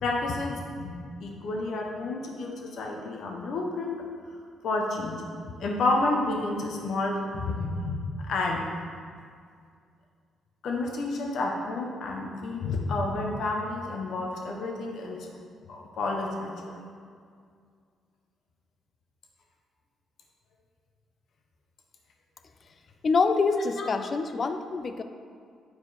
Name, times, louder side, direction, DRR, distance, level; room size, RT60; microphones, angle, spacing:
voice 1, 0.0-0.9 1.2-4.0 4.6-5.2 5.6-8.6 10.6-15.3 15.7-16.7 23.8-23.9, left 2 dB, 65° left, 0 dB, 1.1 m, -30 dB
voice 2, 23.0-25.0, left 4 dB, 40° left, 8 dB, 0.4 m, -25 dB
9.6 x 4.7 x 4.2 m, 2.2 s
cardioid pair, 90°, 0 cm